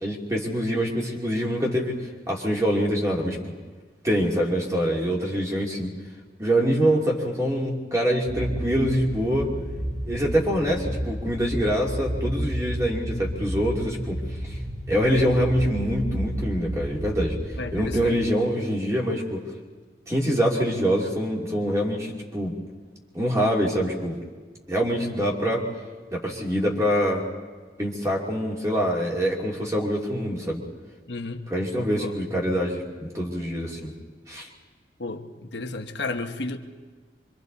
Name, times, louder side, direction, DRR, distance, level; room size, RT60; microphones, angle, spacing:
voice 1, 0.0-3.5 4.0-5.9 6.4-9.5 10.1-14.2 14.4-14.6 14.9-17.4 17.7-19.4 20.1-22.5 23.1-24.2 24.7-25.6 26.1-27.2 27.8-30.6 31.5-33.9 34.3-34.5, equal, 20° right, -2 dB, 2.8 m, -25 dB
sound 1, 8.3-18.0, equal, 85° right, 5.4 m, -32 dB
voice 2, 15.0-15.3 17.6-18.2 31.1-31.5 31.9-32.2 35.0-36.6, left 2 dB, 80° left, 5 dB, 1.1 m, -32 dB
25.5 x 25.0 x 4.1 m, 1.4 s
head